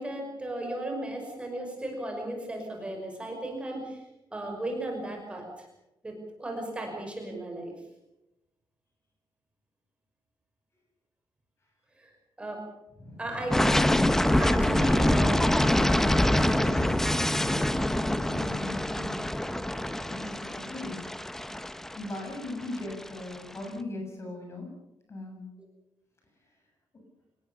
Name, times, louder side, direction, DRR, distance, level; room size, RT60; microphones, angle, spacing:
voice 1, 0.0-4.0 4.3-5.7 6.0-7.7 12.0-12.1 12.4-12.6 13.2-13.9 14.4-15.4, right 1 dB, 10° right, 2 dB, 5.7 m, -35 dB
sound 1, 13.5-23.3, left 1 dB, 5° left, 0.8 m, -25 dB
voice 2, 14.9-15.2 15.6-15.9 16.1-17.7 18.2-19.2 20.1-21.0 22.0-24.7 25.1-25.4, left 1 dB, 30° left, 3 dB, 7.8 m, -38 dB
26.5 x 19.0 x 7.1 m, 0.94 s
wide cardioid pair, 175°, 9 cm